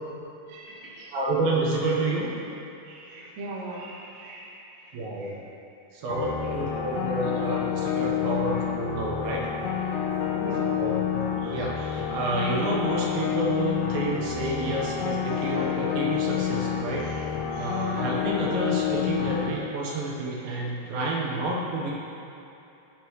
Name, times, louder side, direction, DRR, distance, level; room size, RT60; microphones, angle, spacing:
voice 1, 0.5-1.1 2.8-4.5 4.9-5.3 10.4-10.8 11.4-11.9 15.4-15.8 16.6-17.2 17.5-17.9 20.4-20.6, right 2 dB, 60° right, -4 dB, 2.2 m, -42 dB
voice 2, 1.1-2.3 4.9-5.4 5.9-9.5 10.8-11.1 11.5-17.1 17.6-21.9, right 2 dB, 80° right, -3 dB, 2.9 m, -29 dB
sound 1, 6.1-19.5, left 8 dB, 75° left, 2.2 m, -28 dB
16.0 x 5.4 x 3.1 m, 2.9 s
omnidirectional pair, 4.2 m